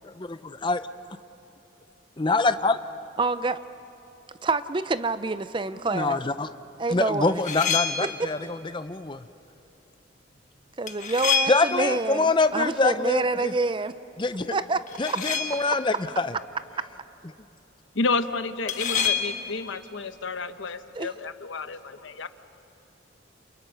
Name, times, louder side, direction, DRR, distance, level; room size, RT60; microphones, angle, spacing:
voice 1, 0.0-0.8 2.2-2.8 5.9-6.5 6.9-9.2 11.5-13.5 14.2-14.5 15.0-16.3, left 3 dB, 25° left, 11 dB, 0.6 m, -25 dB
voice 2, 3.2-3.6 4.4-6.2 6.8-7.4 8.2-8.3 10.8-13.9 14.5-14.8 15.1-15.2 20.9-21.1, right 3 dB, 25° right, 14 dB, 0.5 m, -27 dB
sound 1, 7.3-8.3 10.9-12.1 14.9-15.9 18.7-19.6, left 6 dB, 40° left, 1.3 m, -28 dB
voice 3, 17.9-22.3, left 3 dB, 80° left, 11 dB, 0.9 m, -30 dB
30.0 x 27.5 x 5.7 m, 2.9 s
head